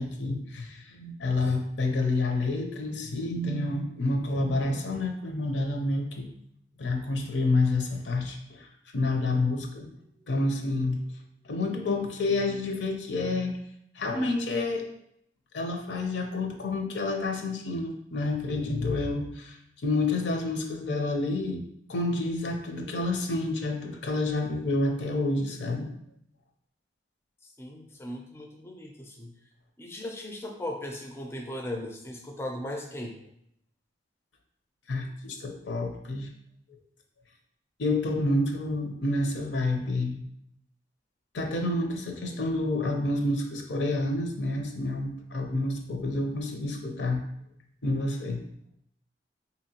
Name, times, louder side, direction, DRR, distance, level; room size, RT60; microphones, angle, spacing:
voice 1, 0.0-6.2 6.8-9.9 10.3-11.1 11.4-13.5 14.0-14.8 15.5-21.6 21.9-25.9 34.9-36.3 37.8-40.2 41.3-47.2 47.8-48.4, left 2 dB, 70° left, 3 dB, 0.6 m, -29 dB
voice 2, 27.6-29.3 29.8-33.2, left 1 dB, 15° left, 2 dB, 0.3 m, -37 dB
4.0 x 2.8 x 2.8 m, 0.75 s
head